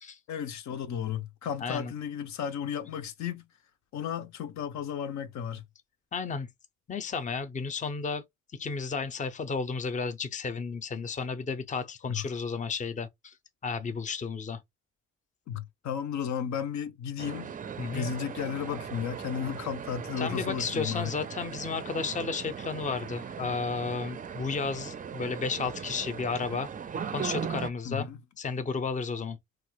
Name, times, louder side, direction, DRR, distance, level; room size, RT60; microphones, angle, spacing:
voice 1, 0.3-3.5 3.9-5.6 12.1-12.2 15.5-17.5 17.9-21.1 27.8-28.2, left 8 dB, 65° left, 0.6 m, -34 dB
voice 2, 1.6-1.9 6.1-6.5 6.9-8.2 8.6-13.3 13.6-14.6 17.8-18.1 20.2-26.7 27.1-28.1 28.4-29.4, left 5 dB, 25° left, 0.6 m, -33 dB
sound 1, 17.2-27.7, right 7 dB, 30° right, 0.4 m, -38 dB
3.0 x 2.4 x 3.0 m
cardioid pair, 90°, 30 cm